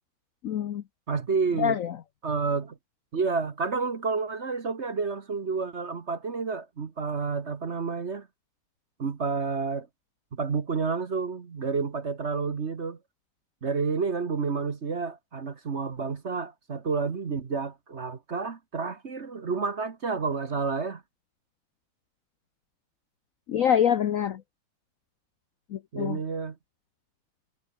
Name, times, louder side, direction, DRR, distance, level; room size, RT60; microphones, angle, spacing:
voice 1, 0.4-0.8 1.6-2.0 23.5-24.4 25.7-26.2, left 9 dB, 65° left, 0.8 m, -25 dB
voice 2, 1.1-1.8 2.2-2.8 3.1-8.3 9.0-9.9 10.3-13.0 13.6-21.0 25.9-26.5, right 4 dB, 40° right, 1.3 m, -30 dB
omnidirectional pair, 2.2 m